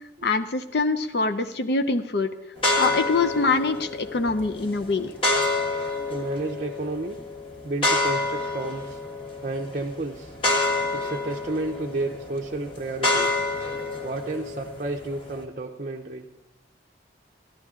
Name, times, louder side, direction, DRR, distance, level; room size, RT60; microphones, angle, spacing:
voice 1, 0.2-2.3 2.8-5.1, left 3 dB, 65° left, 9 dB, 0.6 m, -24 dB
sound 1, 2.6-15.4, left 2 dB, 30° left, 1.5 m, -28 dB
voice 2, 6.1-7.2 7.6-9.0 9.4-10.3 10.9-13.4 14.0-16.3, right 2 dB, 40° right, 0 dB, 0.6 m, -31 dB
14.5 x 11.0 x 3.7 m, 0.90 s
head